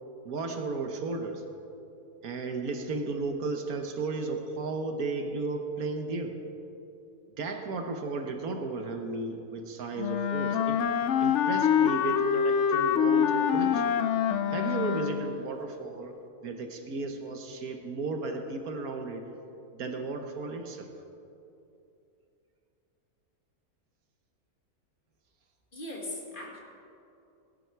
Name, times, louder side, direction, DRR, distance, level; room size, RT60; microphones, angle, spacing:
voice 1, 0.2-1.4 2.2-6.3 7.4-10.8 11.2-13.9 14.5-16.1 16.4-19.2 19.7-20.9, right 3 dB, 70° right, 5 dB, 1.5 m, -34 dB
Wind instrument woodwind instrument, 10.0-15.4, left 8 dB, 65° left, 0.7 m, -26 dB
voice 2, 25.7-26.6, left 1 dB, 35° left, -2 dB, 2.0 m, -39 dB
17.5 x 11.0 x 4.6 m, 2.7 s
omnidirectional pair, 1.7 m